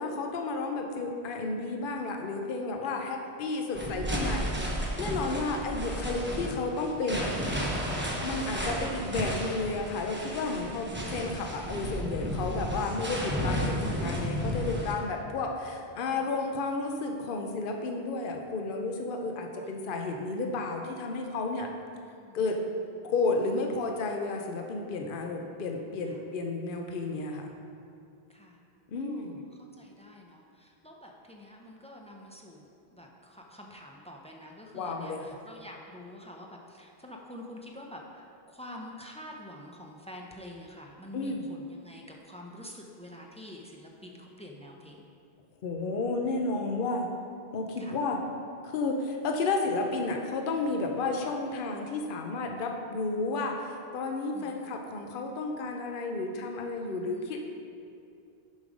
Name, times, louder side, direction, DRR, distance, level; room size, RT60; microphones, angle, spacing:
voice 1, 0.0-7.3 8.2-21.7 22.3-22.6 23.0-27.5 28.9-29.4 34.7-35.4 41.1-41.4 45.6-47.1 47.5-48.2 48.6-57.4, left 3 dB, 60° left, 3 dB, 0.8 m, -32 dB
sound 1, 3.7-14.9, equal, 10° right, 0.8 m, -33 dB
voice 2, 15.9-16.4 19.6-20.0 22.0-22.4 22.7-22.8 26.1-26.2 28.3-28.6 28.9-45.1 47.8-48.0 51.0-51.3 54.3-54.8 56.9-57.4, left 1 dB, 10° left, 0 dB, 0.5 m, -48 dB
7.3 x 5.4 x 4.9 m, 2.5 s
omnidirectional pair, 1.1 m